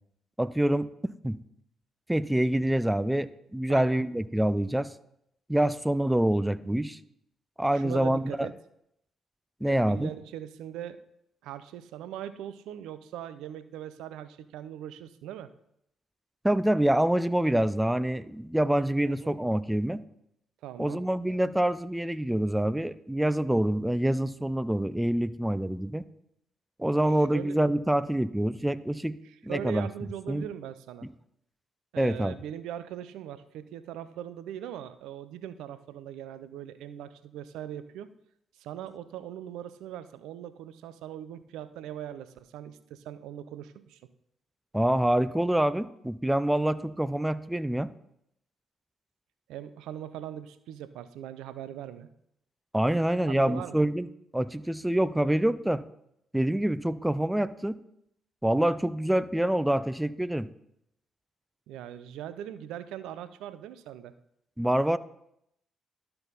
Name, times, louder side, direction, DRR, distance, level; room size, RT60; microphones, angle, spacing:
voice 1, 0.4-1.4 2.1-4.9 5.5-7.0 7.6-8.5 9.6-10.1 16.4-20.0 20.8-26.0 26.8-29.2 29.4-29.9 30.3-30.5 32.0-32.3 44.7-47.9 52.7-54.1 54.3-55.8 56.3-57.8 58.4-60.5 64.6-65.0, right 1 dB, 10° right, 16 dB, 0.5 m, -26 dB
voice 2, 3.7-4.0 7.7-8.5 9.6-11.0 11.4-15.5 19.1-19.4 20.6-21.0 27.2-27.6 29.2-31.1 31.9-38.1 38.6-44.0 49.5-52.1 53.3-53.8 61.7-64.1, right 10 dB, 80° right, 13 dB, 0.5 m, -40 dB
12.5 x 4.4 x 4.0 m, 0.77 s
hypercardioid pair, 50°, 0 cm